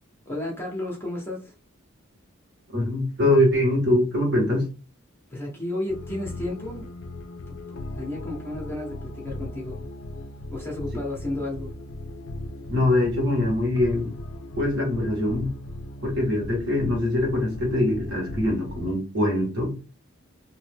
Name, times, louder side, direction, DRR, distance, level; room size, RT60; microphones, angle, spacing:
voice 1, 0.3-1.5 5.3-6.9 7.5-9.8 10.5-11.7, left 1 dB, 10° left, -2 dB, 0.8 m, -33 dB
voice 2, 2.7-4.6 12.7-14.1 14.6-15.5 16.0-19.7, left 1 dB, 55° right, -1 dB, 1.6 m, -23 dB
sound 1, 5.9-18.9, left 1 dB, 65° left, 0.4 m, -37 dB
2.8 x 2.5 x 3.4 m, 0.33 s
head